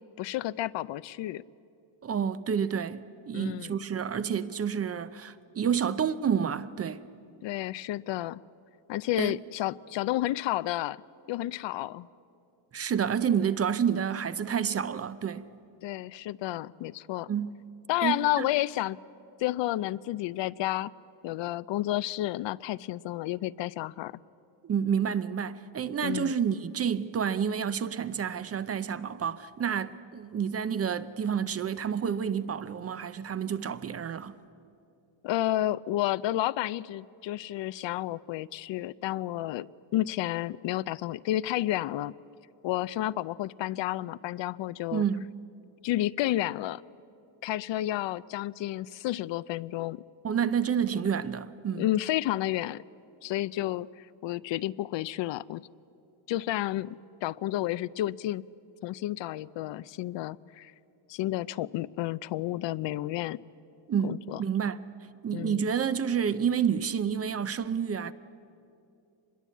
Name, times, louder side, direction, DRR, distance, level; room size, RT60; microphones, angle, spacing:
voice 1, 0.2-1.4 3.3-3.8 7.4-8.4 8.9-11.0 11.3-12.1 15.8-17.3 17.9-19.0 19.4-20.9 21.2-24.2 26.0-26.3 35.2-39.7 39.9-42.1 42.6-45.0 45.8-46.8 47.4-50.0 51.8-52.8 53.2-55.7 56.3-58.4 58.8-60.7 61.1-63.4 64.0-64.4 65.3-65.6, left 15 dB, 65° left, 0.5 m, -31 dB
voice 2, 2.0-7.0 9.2-9.4 12.7-15.5 17.3-17.5 18.0-18.5 24.6-34.4 44.9-45.2 50.2-51.9 63.9-64.8 65.2-68.1, right 7 dB, 30° right, 0.5 m, -29 dB
24.5 x 21.5 x 8.3 m
cardioid pair, 150°, 47 cm